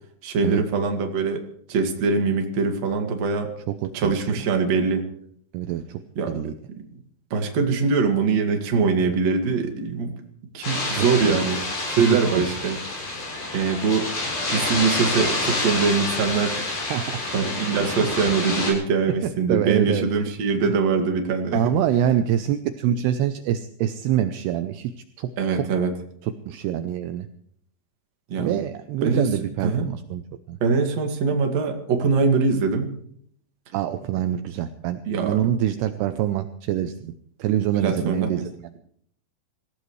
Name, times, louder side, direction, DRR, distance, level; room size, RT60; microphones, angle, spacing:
voice 1, 0.2-1.4 1.7-3.5 3.9-5.1 6.2-6.4 7.3-10.1 10.5-12.8 13.5-14.1 14.5-16.6 17.3-21.7 25.4-25.9 28.3-28.6 29.0-29.3 29.6-29.9 30.6-32.9 35.0-35.4 37.8-38.4, right 5 dB, 45° right, 4 dB, 2.7 m, -23 dB
voice 2, 3.8-4.3 5.5-6.0 6.3-6.5 11.0-11.4 11.9-12.0 12.3-12.4 16.9-17.2 17.8-18.0 19.5-20.0 21.5-24.9 25.2-25.6 26.2-27.3 28.4-30.2 30.5-30.6 33.7-37.1 37.4-38.8, right 11 dB, 80° right, 9 dB, 2.6 m, -25 dB
sound 1, 10.6-18.7, left 2 dB, 60° left, 8.7 m, -28 dB
26.0 x 16.0 x 3.2 m, 0.66 s
omnidirectional pair, 5.0 m